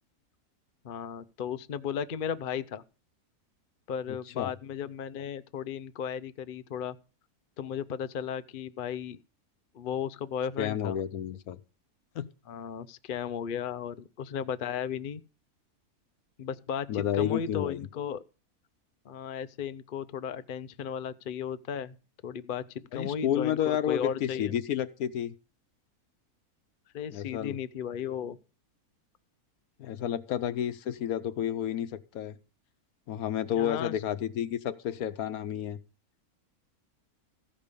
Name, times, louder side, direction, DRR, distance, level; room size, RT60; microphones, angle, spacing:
voice 1, 0.8-2.8 3.9-7.0 7.6-9.2 9.7-11.0 12.5-15.2 16.4-18.2 19.0-22.0 22.2-24.5 26.9-28.4 33.5-33.9, left 8 dB, 50° left, 0.6 m, -35 dB
voice 2, 4.1-4.5 10.6-11.6 12.1-12.3 16.9-17.9 22.9-25.3 27.1-27.6 29.8-32.4 33.1-35.8, left 10 dB, 75° left, 1.2 m, -31 dB
15.0 x 5.5 x 6.7 m
omnidirectional pair, 1.6 m